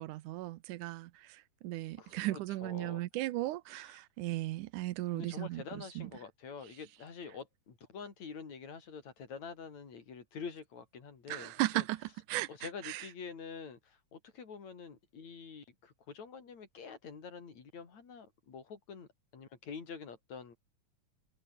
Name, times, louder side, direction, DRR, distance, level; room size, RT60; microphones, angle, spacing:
voice 1, 0.0-6.1 11.3-13.1, right 17 dB, 85° right, 2.3 m, -37 dB
voice 2, 2.0-3.0 3.7-3.9 5.1-11.8 12.5-19.1 19.3-20.6, left 5 dB, 65° left, 5.2 m, -47 dB
omnidirectional pair, 3.5 m